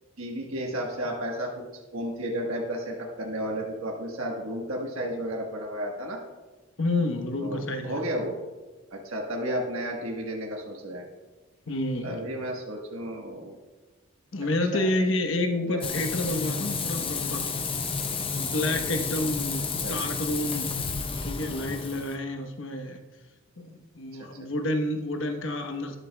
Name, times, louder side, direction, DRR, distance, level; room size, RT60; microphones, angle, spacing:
voice 1, 0.2-1.6 1.9-6.2 7.4-8.4 8.9-11.0 12.0-13.6 14.7-14.9 15.6-15.8 19.8-19.9 24.4-24.5, equal, 80° right, 0 dB, 1.3 m, -32 dB
voice 2, 6.8-8.0 11.7-12.2 14.3-17.4 18.3-20.7 21.2-23.0 23.6-26.0, left 1 dB, 70° left, 5 dB, 1.0 m, -29 dB
Frying (food), 15.8-22.2, left 5 dB, 25° left, 0.6 m, -31 dB
12.5 x 11.0 x 2.2 m, 1.2 s
head